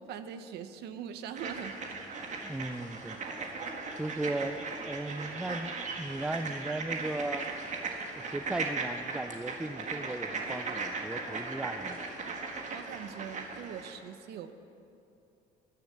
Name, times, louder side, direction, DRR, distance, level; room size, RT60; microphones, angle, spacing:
voice 1, 0.1-1.8 12.7-14.5, right 8 dB, 75° right, 10 dB, 0.9 m, -42 dB
sound 1, 1.4-13.9, right 4 dB, 45° right, 1.7 m, -38 dB
voice 2, 2.4-3.2 3.9-7.5 8.3-12.0, right 2 dB, 5° right, 11 dB, 0.5 m, -36 dB
13.0 x 10.5 x 7.3 m, 2.7 s
cardioid pair, 110°, 17 cm